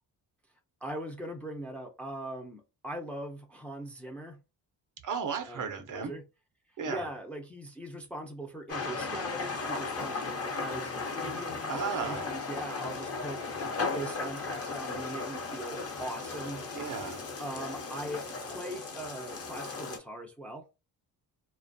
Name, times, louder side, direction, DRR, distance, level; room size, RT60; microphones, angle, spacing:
voice 1, 0.8-4.4 5.4-6.2 6.8-13.4 13.9-16.6 17.4-20.6, right 1 dB, 5° left, 0.4 m, -40 dB
voice 2, 5.0-6.1 6.8-7.0 11.7-12.2 16.7-17.2, right 6 dB, 50° right, 0.5 m, -34 dB
sound 1, 8.7-20.0, left 4 dB, 35° left, 0.8 m, -36 dB
2.3 x 2.1 x 2.5 m
cardioid pair, 90°, 42 cm